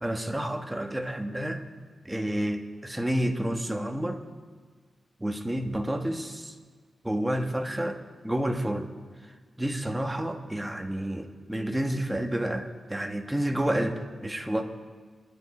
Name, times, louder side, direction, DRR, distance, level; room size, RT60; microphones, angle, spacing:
voice 1, 0.0-1.6 2.0-4.2 5.2-6.5 7.0-8.9 9.6-14.6, right 1 dB, 10° right, 5 dB, 1.3 m, -30 dB
25.5 x 11.0 x 4.3 m, 1.5 s
wide cardioid pair, 100°, 0 cm